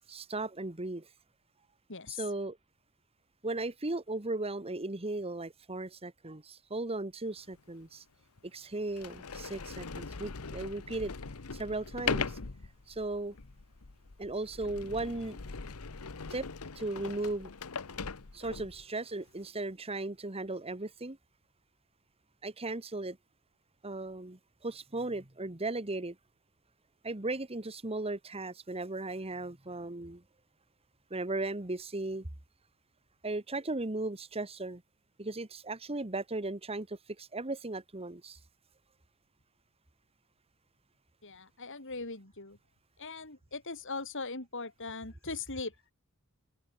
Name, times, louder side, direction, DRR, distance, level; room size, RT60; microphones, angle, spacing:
voice 1, 0.1-1.1 2.1-2.6 3.4-8.0 8.4-11.1 11.5-12.4 12.9-13.3 14.2-15.4 16.3-16.5 16.7-17.5 18.3-21.2 22.4-23.2 23.8-26.2 27.0-30.2 31.1-32.3 33.2-34.8 35.2-38.4, right 2 dB, 25° right, 1.5 m, -36 dB
voice 2, 1.9-2.2 41.2-42.6 43.0-45.7, left 3 dB, 60° left, 5.0 m, -40 dB
Sliding door, 7.5-7.6 8.4-8.5 8.9-18.8, left 5 dB, 80° left, 1.1 m, -40 dB
open air
head